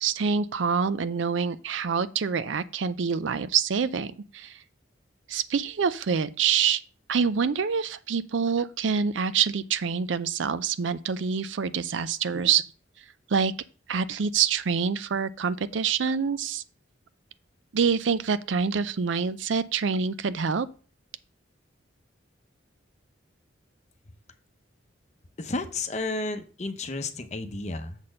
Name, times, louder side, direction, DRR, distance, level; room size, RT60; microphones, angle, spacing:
voice 1, 0.0-4.6 5.3-6.8 7.1-12.7 13.3-13.5 13.9-16.6 17.7-20.7, right 6 dB, 70° right, 0.5 m, -26 dB
voice 2, 25.4-28.0, left 3 dB, 35° left, 0.8 m, -32 dB
7.2 x 4.2 x 6.4 m
head